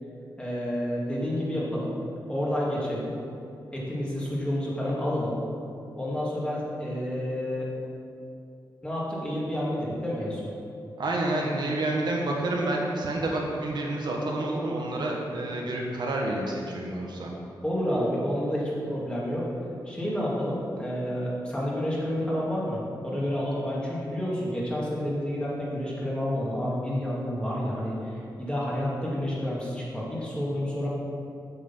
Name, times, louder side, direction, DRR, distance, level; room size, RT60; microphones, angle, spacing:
voice 1, 0.4-1.9 2.3-3.1 3.7-5.4 6.0-7.7 8.8-10.5 17.6-19.5 19.9-30.9, equal, 10° left, -6 dB, 2.3 m, -29 dB
voice 2, 11.0-17.3, right 2 dB, 65° right, -1 dB, 1.3 m, -29 dB
8.3 x 6.9 x 5.5 m, 2.6 s
wide cardioid pair, 120°, 8 cm